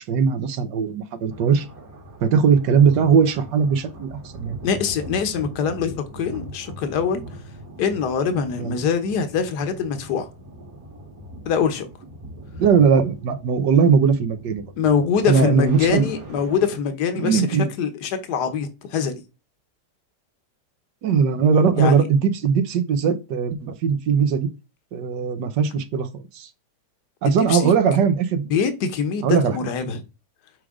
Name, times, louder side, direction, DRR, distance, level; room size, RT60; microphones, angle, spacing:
voice 1, 0.0-1.7 2.2-4.6 8.6-8.7 12.6-14.6 15.3-16.1 17.2-17.7 21.0-24.5 24.9-26.5 27.2-28.5 29.2-29.6, right 6 dB, 85° right, 1.5 m, -19 dB
sound 1, 1.3-16.8, right 1 dB, 60° right, 2.1 m, -41 dB
voice 2, 4.6-7.4 7.8-10.3 11.4-11.9 14.8-17.5 17.8-19.2 21.7-22.1 27.2-27.7 28.5-30.0, left 6 dB, 75° left, 1.5 m, -24 dB
7.4 x 4.8 x 3.7 m
omnidirectional pair, 1.8 m